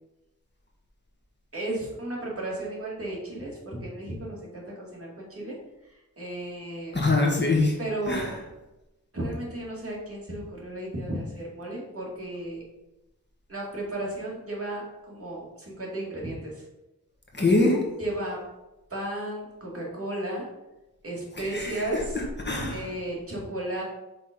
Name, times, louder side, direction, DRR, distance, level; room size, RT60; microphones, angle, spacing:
voice 1, 1.5-5.6 6.2-7.0 7.8-8.3 9.1-12.6 13.5-16.6 18.0-18.4 18.9-20.4 21.0-22.0 22.7-23.8, right 1 dB, 40° right, -4 dB, 2.3 m, -34 dB
voice 2, 6.9-7.8 8.1-8.3 17.3-17.8 21.4-22.9, left 2 dB, 30° left, -1 dB, 1.5 m, -24 dB
5.7 x 4.0 x 5.2 m, 1.0 s
wide cardioid pair, 80°, 36 cm